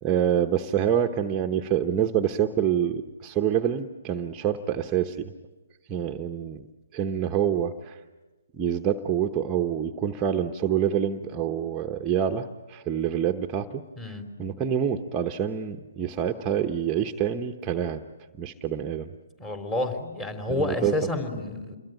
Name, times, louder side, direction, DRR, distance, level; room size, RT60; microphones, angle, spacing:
voice 1, 0.0-5.3 5.9-6.7 6.9-8.0 8.5-14.1 14.4-18.0 18.4-19.1 20.5-20.9, right 9 dB, 15° right, 5 dB, 1.0 m, -26 dB
voice 2, 19.4-21.8, left 2 dB, 15° left, 7 dB, 3.5 m, -29 dB
28.0 x 22.5 x 9.1 m, 1.2 s
figure-of-eight pair, 140°, 0 cm